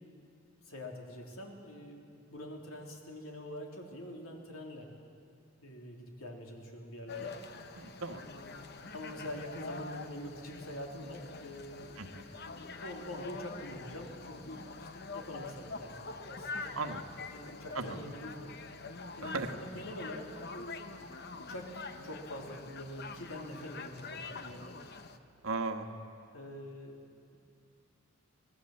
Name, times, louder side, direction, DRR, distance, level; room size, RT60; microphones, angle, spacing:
voice 1, 0.6-4.9 5.6-7.4 8.2-8.7 8.9-11.9 12.4-16.0 16.3-16.8 17.3-18.6 19.2-21.0 21.4-21.7 22.0-24.8 26.3-27.0, equal, 85° left, 1 dB, 3.4 m, -45 dB
sound 1, 7.1-25.2, left 4 dB, 50° left, 1.0 m, -45 dB
voice 2, 7.8-8.3 12.0-12.3 16.7-17.0 17.7-18.0 19.2-19.5 25.4-25.9, right 3 dB, 85° right, 6 dB, 1.5 m, -37 dB
26.5 x 19.0 x 7.8 m, 2.4 s
head